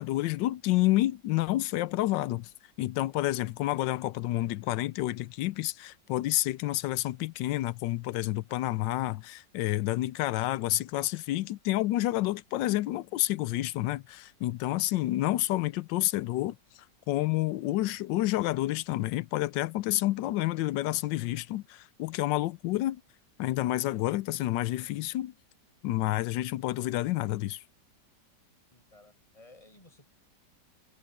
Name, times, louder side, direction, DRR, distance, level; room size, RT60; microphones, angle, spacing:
voice 1, 0.0-2.5 2.8-16.6 17.1-23.0 23.4-25.3 25.8-27.6, left 16 dB, 90° left, 1.3 m, -29 dB
voice 2, 28.7-30.1, left 2 dB, 20° left, 7.1 m, -56 dB
omnidirectional pair, 1.9 m